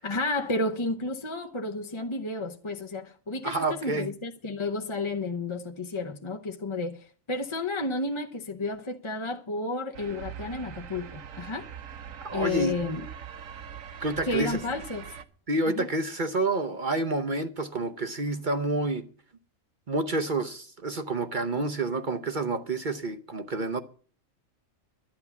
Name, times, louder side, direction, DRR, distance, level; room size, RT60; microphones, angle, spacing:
voice 1, 0.0-11.7 12.3-13.1 14.2-15.0 15.7-15.9, left 2 dB, 25° left, 0.8 m, -32 dB
voice 2, 3.4-4.1 12.2-12.7 14.0-14.6 15.5-19.1 19.9-23.8, right 2 dB, 45° right, 0.9 m, -29 dB
sound 1, 9.9-15.2, right 8 dB, 85° right, 1.4 m, -42 dB
11.5 x 9.6 x 7.1 m
omnidirectional pair, 1.3 m